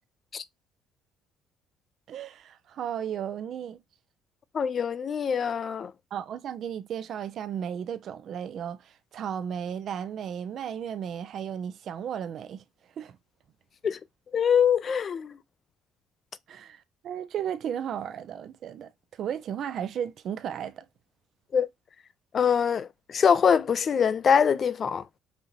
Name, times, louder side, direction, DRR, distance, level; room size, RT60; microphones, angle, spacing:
voice 1, 2.1-3.8 6.1-12.6 13.0-13.2 16.5-20.8, right 9 dB, 60° right, 0.5 m, -34 dB
voice 2, 4.5-5.9 13.8-14.0 14.3-15.3 21.5-21.7 22.3-25.0, left 7 dB, 45° left, 0.4 m, -23 dB
5.4 x 2.7 x 2.9 m
cardioid pair, 90°, 0 cm